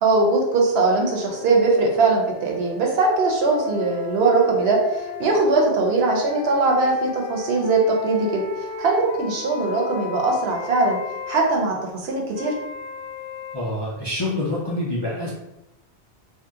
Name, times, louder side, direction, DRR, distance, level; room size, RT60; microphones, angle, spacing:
voice 1, 0.0-8.4 8.8-11.0 11.3-12.5, right 3 dB, 70° right, 0 dB, 0.9 m, -20 dB
sound 1, 0.9-5.4 6.1-11.5 12.3-13.6, left 3 dB, 85° left, 0.9 m, -36 dB
voice 2, 13.5-15.3, left 1 dB, 35° left, -6 dB, 0.4 m, -26 dB
2.7 x 2.1 x 3.5 m, 0.92 s
omnidirectional pair, 1.1 m